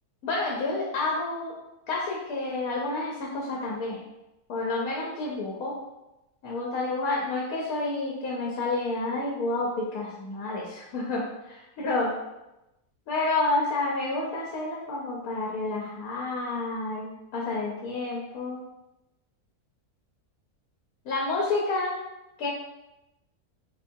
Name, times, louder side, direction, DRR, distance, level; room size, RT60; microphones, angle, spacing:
voice 1, 0.2-1.5 1.9-4.0 4.5-5.7 6.4-12.2 13.1-18.6 21.0-22.0 22.4-22.5, left 2 dB, 70° left, -3 dB, 1.2 m, -29 dB
5.4 x 3.5 x 2.7 m, 0.97 s
omnidirectional pair, 1.6 m